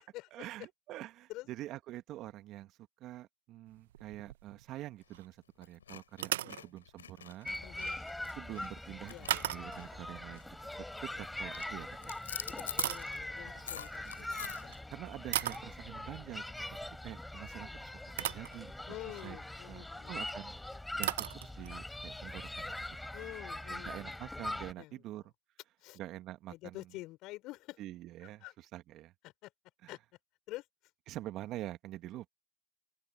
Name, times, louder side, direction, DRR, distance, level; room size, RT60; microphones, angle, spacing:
voice 1, 0.3-7.5 8.4-12.2 14.0-14.3 14.9-16.5 16.7-19.0 19.2-19.4 19.7-20.6 20.9-22.7 23.7-25.3 25.9-26.9 27.8-29.1 29.8-29.9 31.1-32.3, right 15 dB, 45° right, 2.0 m, -46 dB
sound 1, 3.7-4.8 5.1-5.3 6.1-6.6 9.3-10.0 11.7-11.8 12.4-13.6 14.6-14.8 15.3-15.7 17.6-17.7 18.2-18.6 19.1-19.3 20.3-20.4 20.6-20.7 21.0-21.8, right 13 dB, 75° right, 0.8 m, -37 dB
sound 2, 5.0-5.2 5.6-10.1 10.3-10.6 10.9-11.3 11.5-14.8, left 8 dB, 90° left, 5.9 m, -45 dB
sound 3, 7.5-24.7, left 1 dB, 5° left, 4.3 m, -43 dB
voice 2, 7.6-8.0 9.1-9.6 12.3-14.8 18.9-20.1 23.1-24.0 24.8-25.0 25.8-26.0 26.5-27.8 28.4-28.5 29.2-29.5 29.9-30.0 30.5-30.6, left 19 dB, 50° left, 5.5 m, -48 dB
open air
hypercardioid pair, 95°, 0 cm